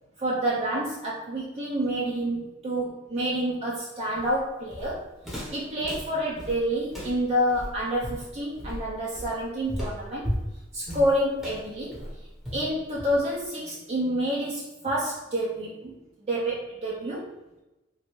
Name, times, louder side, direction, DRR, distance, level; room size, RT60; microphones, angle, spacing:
voice 1, 0.2-10.3 10.7-12.0 12.5-17.3, right 1 dB, 35° right, -5 dB, 0.5 m, -28 dB
Walk footsteps, 4.1-13.4, equal, ahead, 0.8 m, -36 dB
3.0 x 2.6 x 3.0 m, 1.0 s
head